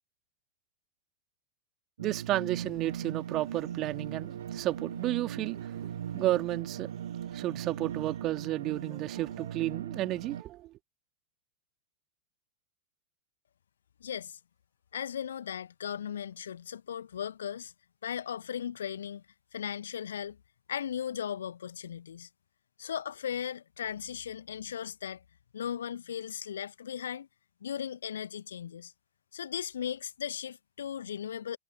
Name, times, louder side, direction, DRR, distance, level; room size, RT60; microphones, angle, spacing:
voice 1, 2.0-5.7 6.1-6.9 7.3-10.7, right 15 dB, 35° right, 2.4 m, -32 dB
sound 1, 2.0-10.4, right 9 dB, 65° right, 0.9 m, -39 dB
voice 2, 14.0-14.4 14.9-17.7 18.0-19.2 19.5-20.4 20.7-22.3 22.8-25.2 25.5-27.3 27.6-28.9 29.3-31.6, left 9 dB, 65° left, 1.4 m, -37 dB
figure-of-eight pair, 90°, 0 cm